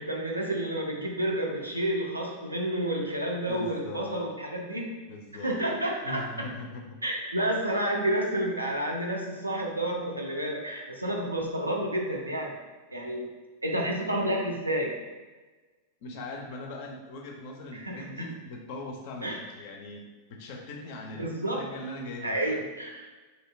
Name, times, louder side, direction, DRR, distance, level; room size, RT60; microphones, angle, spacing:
voice 1, 0.0-5.0 5.4-6.5 7.0-12.5 12.9-13.3 13.6-14.9 17.7-18.3 19.2-19.4 21.2-21.7 22.2-23.1, right 1 dB, 85° right, -1 dB, 0.4 m, -30 dB
voice 2, 3.5-4.4 5.1-5.6 6.0-6.9 16.0-22.6, left 2 dB, 50° left, 2 dB, 0.4 m, -40 dB
2.7 x 2.0 x 2.5 m, 1.3 s
figure-of-eight pair, 90°, 0 cm